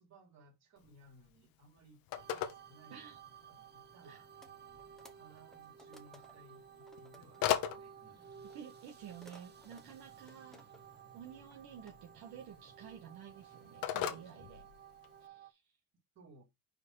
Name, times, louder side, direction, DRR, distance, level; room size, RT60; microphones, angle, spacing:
voice 1, 0.0-3.2 3.5-4.3 5.1-8.3 9.8-9.9 16.1-16.4, right 2 dB, 45° right, 3.1 m, -61 dB
Telephone, 0.8-15.3, left 11 dB, 65° left, 1.1 m, -43 dB
sound 1, 2.1-15.5, right 8 dB, 25° right, 0.6 m, -56 dB
sound 2, 4.4-4.5 4.8-6.5 6.8-7.7 8.5-11.0 11.3-11.9, left 1 dB, ahead, 1.1 m, -60 dB
voice 2, 8.5-10.7 11.1-14.7 15.2-15.6, right 8 dB, 65° right, 1.7 m, -51 dB
5.1 x 4.7 x 4.8 m
cardioid pair, 130°, 39 cm